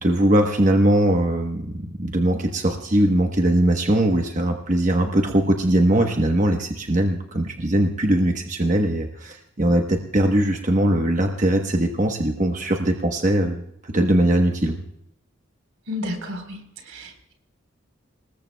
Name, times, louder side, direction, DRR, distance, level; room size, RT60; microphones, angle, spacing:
voice 1, 0.0-14.8, right 1 dB, 35° right, 3 dB, 1.1 m, -21 dB
voice 2, 15.9-17.3, left 2 dB, 85° right, 4 dB, 4.1 m, -32 dB
25.5 x 20.5 x 2.3 m, 0.74 s
head